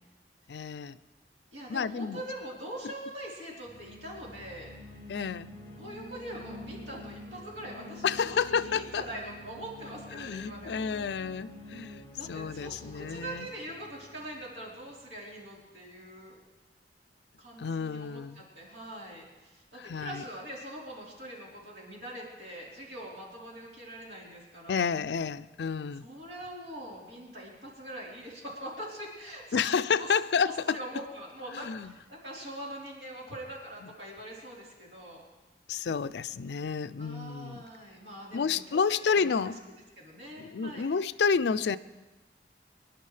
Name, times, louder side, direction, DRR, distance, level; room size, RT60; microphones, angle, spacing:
voice 1, 0.5-1.0 1.7-2.2 5.1-5.5 8.0-9.0 10.1-13.5 17.6-18.4 19.8-20.2 24.7-26.1 29.5-30.8 31.5-31.9 35.7-37.6 38.3-39.6 40.4-41.8, left 6 dB, 70° left, 15 dB, 0.4 m, -30 dB
voice 2, 1.5-4.7 5.8-10.9 12.2-16.4 17.4-24.9 26.0-30.1 30.4-35.2 37.0-39.3 40.0-40.9, right 1 dB, 80° right, -4 dB, 3.9 m, -43 dB
sound 1, 3.6-15.2, left 1 dB, 30° left, 2.2 m, -48 dB
25.5 x 11.0 x 3.3 m, 1.1 s
head